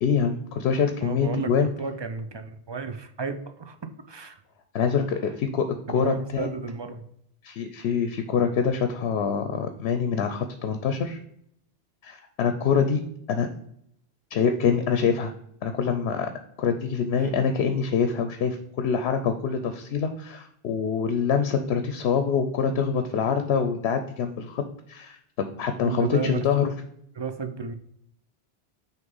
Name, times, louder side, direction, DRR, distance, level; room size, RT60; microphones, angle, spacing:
voice 1, 0.0-1.7 4.7-6.5 7.4-11.2 12.0-13.0 13.3-13.5 14.3-15.3 15.6-16.3 16.6-24.6 24.9-26.7, left 6 dB, 80° left, 7 dB, 0.9 m, -25 dB
voice 2, 1.0-4.4 5.9-7.0 17.2-17.3 25.8-26.7 27.2-27.7, right 5 dB, 40° right, 7 dB, 0.4 m, -33 dB
6.3 x 3.0 x 5.3 m, 0.72 s
omnidirectional pair, 1.1 m